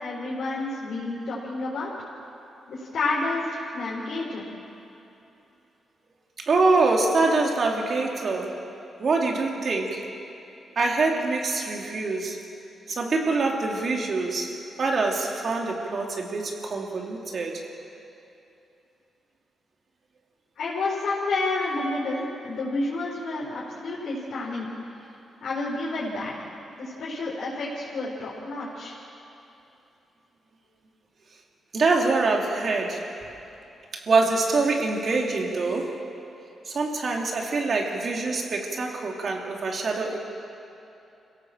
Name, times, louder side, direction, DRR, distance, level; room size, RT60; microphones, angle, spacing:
voice 1, 0.0-1.9 2.7-4.5 20.6-24.7 25.4-26.3 26.8-29.0, left 2 dB, 70° left, -6 dB, 4.5 m, -30 dB
voice 2, 6.4-8.7 9.0-10.2 10.7-12.4 12.9-17.6 31.7-33.3 33.9-36.1 36.6-40.2, right 3 dB, 55° right, 1 dB, 3.1 m, -25 dB
25.0 x 17.0 x 7.4 m, 2.9 s
cardioid pair, 85°, 0 cm